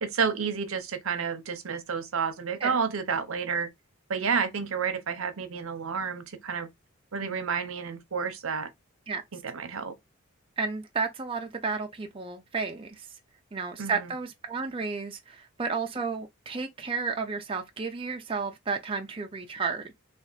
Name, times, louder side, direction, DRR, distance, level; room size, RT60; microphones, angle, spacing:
voice 1, 0.0-3.7 4.1-6.7 7.1-8.7 9.3-9.9 13.8-14.1, right 6 dB, 75° right, 0.8 m, -30 dB
voice 2, 10.6-13.1 13.5-19.9, right 4 dB, 25° right, 0.5 m, -32 dB
3.4 x 2.4 x 4.0 m
head